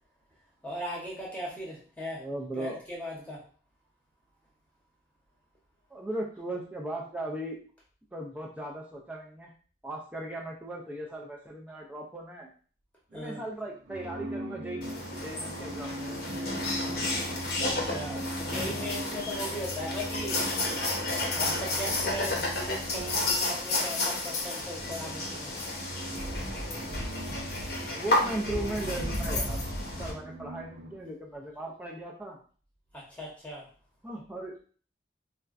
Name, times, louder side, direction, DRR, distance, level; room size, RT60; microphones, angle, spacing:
voice 1, 0.6-2.2 2.5-3.4 13.1-13.4 17.6-20.4 21.3-25.5 32.9-33.7, equal, 10° left, -4 dB, 0.9 m, -38 dB
voice 2, 2.2-2.8 5.9-7.6 8.1-9.5 9.8-12.5 13.1-16.2 27.9-29.6 30.0-32.4 34.0-34.6, right 1 dB, 10° right, -1 dB, 0.4 m, -37 dB
sound 1, 13.1-13.4 13.8-23.9 24.4-31.0, right 2 dB, 85° right, 0.6 m, -41 dB
sound 2, 14.8-30.1, left 2 dB, 55° left, 0.8 m, -32 dB
4.2 x 2.2 x 2.4 m, 0.41 s
head